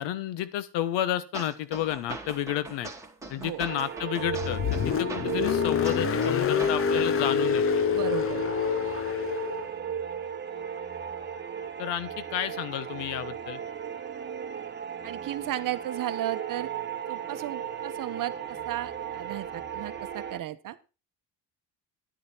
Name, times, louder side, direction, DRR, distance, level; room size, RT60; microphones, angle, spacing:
voice 1, 0.0-2.9 3.3-7.8 11.8-13.6, left 11 dB, 75° left, 15 dB, 1.2 m, -31 dB
sound 1, 1.3-7.3, right 3 dB, 5° right, 2.6 m, -41 dB
sound 2, 3.7-20.4, right 8 dB, 25° right, 1.3 m, -36 dB
Car, 4.2-9.7, left 8 dB, 30° left, 0.6 m, -27 dB
voice 2, 7.9-8.4 15.0-16.7 17.1-20.8, right 13 dB, 50° right, 13 dB, 0.9 m, -34 dB
10.5 x 9.9 x 4.4 m, 0.32 s
cardioid pair, 125°, 43 cm